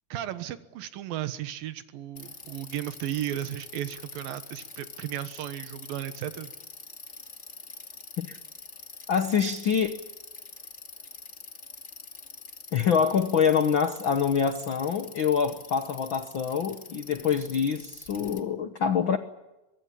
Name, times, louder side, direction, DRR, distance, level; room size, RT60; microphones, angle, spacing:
voice 1, 0.1-6.5, right 12 dB, 80° right, 11 dB, 3.1 m, -35 dB
Bicycle, 2.2-18.4, left 3 dB, 25° left, 1.9 m, -45 dB
voice 2, 9.1-9.9 12.7-19.2, left 7 dB, 90° left, 9 dB, 1.1 m, -25 dB
23.5 x 23.5 x 8.6 m, 0.98 s
omnidirectional pair, 4.1 m